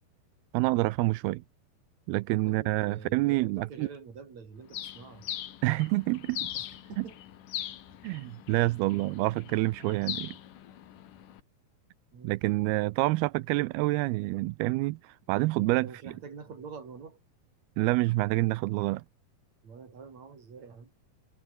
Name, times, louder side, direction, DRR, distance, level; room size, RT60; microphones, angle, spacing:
voice 1, 0.5-1.4 2.1-3.9 5.6-6.5 7.0-7.1 8.0-10.4 12.2-15.9 17.8-19.0, right 21 dB, 85° right, 2.5 m, -27 dB
voice 2, 2.4-5.3 6.5-7.2 7.9-8.0 12.1-12.4 15.8-17.2 19.6-20.9, right 5 dB, 45° right, 5.4 m, -46 dB
Bird, 4.7-11.4, left 12 dB, 60° left, 2.7 m, -41 dB
omnidirectional pair, 4.6 m